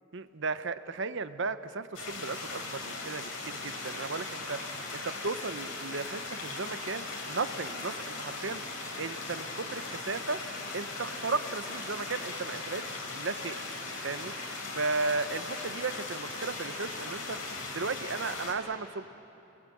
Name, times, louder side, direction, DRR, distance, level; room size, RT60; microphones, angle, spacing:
voice 1, 0.1-4.6 4.9-8.6 9.0-10.4 10.7-12.8 13.1-13.6 14.0-14.3 14.7-17.4 17.7-19.1, right 4 dB, 60° right, 12 dB, 0.9 m, -35 dB
sound 1, 1.9-18.5, left 3 dB, 80° left, 4.6 m, -39 dB
29.0 x 20.5 x 8.5 m, 3.0 s
head